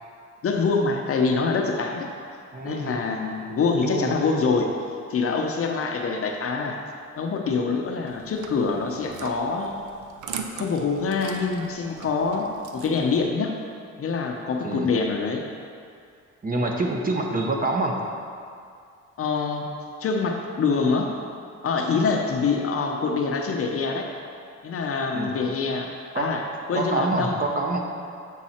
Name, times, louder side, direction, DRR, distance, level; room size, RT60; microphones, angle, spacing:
voice 1, 0.4-2.1 2.6-4.7 5.1-6.7 7.2-9.8 10.5-13.5 14.0-15.4 19.2-19.7 20.0-21.1 21.6-24.1 24.6-25.9 26.2-26.4 26.7-27.3, left 4 dB, 50° left, 2 dB, 0.7 m, -25 dB
voice 2, 2.5-3.0 3.8-4.1 14.6-14.9 16.4-18.0 25.1-25.4 26.1-26.3 26.7-27.8, right 2 dB, 30° right, 0 dB, 0.9 m, -26 dB
sound 1, 8.1-13.2, right 6 dB, 75° right, 0.6 m, -40 dB
7.4 x 4.1 x 4.3 m, 2.3 s
cardioid pair, 90°, 30 cm